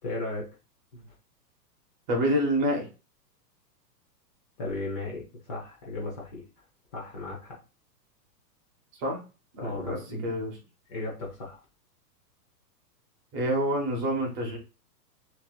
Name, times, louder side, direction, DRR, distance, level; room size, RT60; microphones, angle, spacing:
voice 1, 0.0-0.5 0.9-1.1 4.6-6.4 6.9-7.6 9.6-10.3 10.9-11.6, left 2 dB, 25° left, -4 dB, 0.6 m, -35 dB
voice 2, 2.1-2.9 9.0-9.2 9.5-10.6 13.3-14.6, equal, 30° right, 0 dB, 0.8 m, -27 dB
2.9 x 2.7 x 2.3 m, 0.31 s
hypercardioid pair, 150°, 50 cm